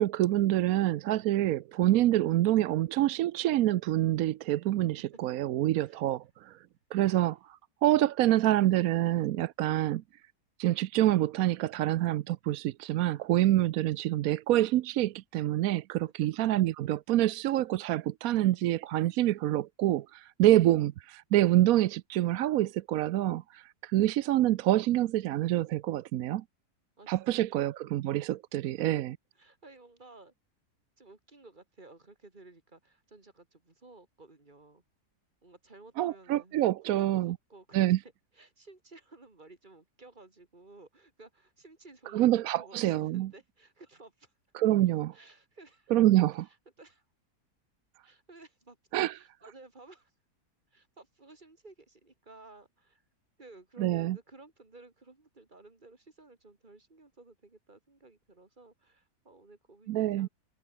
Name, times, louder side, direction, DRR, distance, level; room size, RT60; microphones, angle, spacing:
voice 1, 0.0-6.7 6.9-7.3 7.8-10.0 10.6-26.4 27.1-29.1 36.0-37.4 37.7-38.0 42.1-43.3 44.5-45.1 45.9-46.3 48.9-49.2 53.8-54.2 59.9-60.3, right 14 dB, 70° right, 1.0 m, -26 dB
voice 2, 27.0-27.5 28.8-28.9 29.3-30.3 31.0-34.8 35.4-36.6 36.9-37.9 38.3-44.3 45.1-45.9 46.4-47.0 48.0-48.8 49.1-50.1 50.7-53.0 53.4-60.3, right 3 dB, 30° right, 2.7 m, -55 dB
omnidirectional pair, 1.7 m